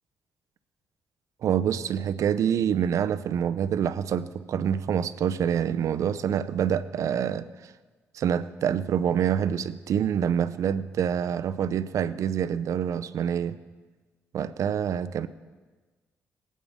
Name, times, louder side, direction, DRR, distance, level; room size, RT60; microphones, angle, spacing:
voice 1, 1.4-7.7 8.1-13.6 14.3-15.3, right 8 dB, 65° right, 13 dB, 0.6 m, -26 dB
19.0 x 8.5 x 3.6 m, 1.3 s
supercardioid pair, 65°, 6 cm